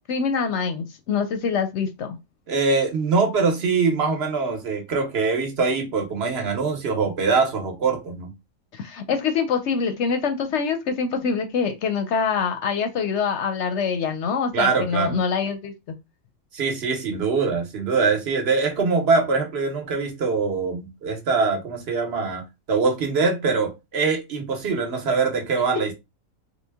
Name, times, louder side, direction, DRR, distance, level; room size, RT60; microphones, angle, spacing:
voice 1, 0.0-2.2 8.7-15.7, left 6 dB, 65° left, 0.8 m, -25 dB
voice 2, 2.5-8.3 14.5-15.2 16.5-22.4 22.7-25.9, right 4 dB, 50° right, 1.1 m, -23 dB
3.9 x 2.1 x 3.4 m
omnidirectional pair, 1.4 m